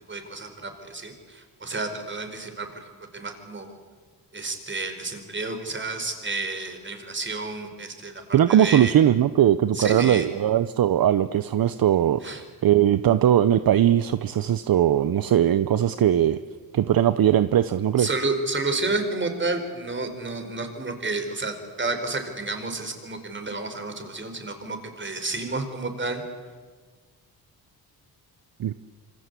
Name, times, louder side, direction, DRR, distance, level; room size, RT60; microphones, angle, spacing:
voice 1, 0.1-2.8 3.1-3.7 4.3-8.9 9.7-10.3 12.2-12.4 18.0-26.2, right 3 dB, 30° right, 6 dB, 4.9 m, -30 dB
voice 2, 8.3-16.4 16.7-18.1 28.6-28.7, right 11 dB, 60° right, 13 dB, 0.8 m, -20 dB
27.0 x 26.0 x 8.4 m, 1.5 s
cardioid pair, 105°, 39 cm